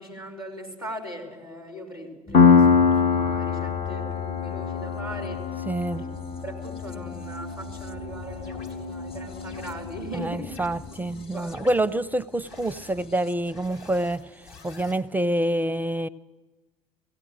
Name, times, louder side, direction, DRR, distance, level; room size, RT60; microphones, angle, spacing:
voice 1, 0.0-5.6 6.0-6.1 6.4-10.6 11.0-11.5, right 1 dB, 90° left, -7 dB, 4.0 m, -39 dB
Piano, 2.3-9.7, left 5 dB, 50° left, 1.0 m, -24 dB
sound 1, 2.3-14.7, left 2 dB, 30° left, 1.4 m, -42 dB
voice 2, 5.7-6.0 10.1-16.1, right 1 dB, 10° right, 19 dB, 0.5 m, -27 dB
sound 2, 8.4-8.7 9.4-9.7 10.5-10.7 11.4-11.8 12.4-12.9 13.4-15.0, left 4 dB, 65° left, 3.7 m, -47 dB
17.5 x 17.0 x 8.9 m, 1.2 s
figure-of-eight pair, 50°, 18 cm